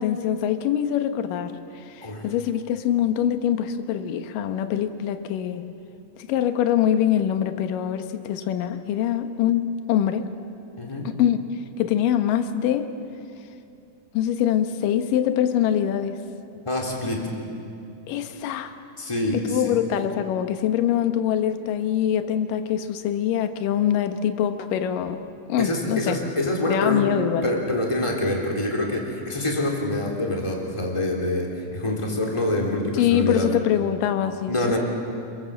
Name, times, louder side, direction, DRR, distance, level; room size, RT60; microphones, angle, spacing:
voice 1, 0.0-5.7 6.2-10.3 11.0-11.4 11.8-12.9 14.1-16.2 18.1-18.7 19.3-25.2 25.5-26.2 26.7-27.5 32.9-34.8, left 10 dB, 70° left, 8 dB, 2.6 m, -24 dB
voice 2, 10.8-11.1 16.6-17.3 19.0-19.8 25.6-27.1 27.4-33.5 34.5-34.8, left 1 dB, 10° left, -1 dB, 3.2 m, -26 dB
29.0 x 22.0 x 7.6 m, 2.7 s
omnidirectional pair, 4.4 m